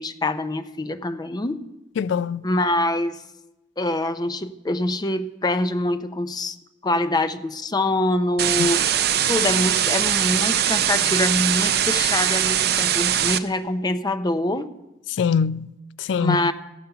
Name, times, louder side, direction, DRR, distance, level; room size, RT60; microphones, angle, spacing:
voice 1, 0.0-1.6 2.4-3.2 3.8-6.6 6.8-8.9 9.3-14.7 16.1-16.5, left 1 dB, 25° left, 0.5 m, -24 dB
voice 2, 2.0-2.4 15.1-16.5, left 6 dB, 85° left, 0.3 m, -24 dB
sound 1, 8.4-13.4, right 10 dB, 60° right, 0.5 m, -21 dB
15.5 x 6.8 x 5.7 m
head